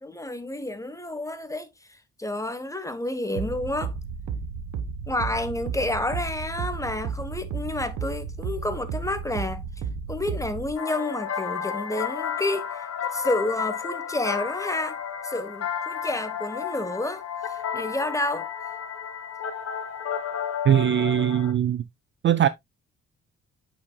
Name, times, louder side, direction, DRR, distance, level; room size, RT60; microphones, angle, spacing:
voice 1, 0.0-1.7 2.2-3.9 5.1-9.6 10.1-12.9 13.1-15.0 15.2-18.5, left 2 dB, 10° left, 1.2 m, -30 dB
sound 1, 3.4-10.7, right 6 dB, 80° right, 1.2 m, -33 dB
sound 2, 10.8-21.5, left 8 dB, 50° left, 1.4 m, -32 dB
voice 2, 20.7-21.8 22.2-22.5, right 10 dB, 40° right, 0.4 m, -20 dB
8.3 x 5.4 x 2.3 m
cardioid pair, 90°, 30 cm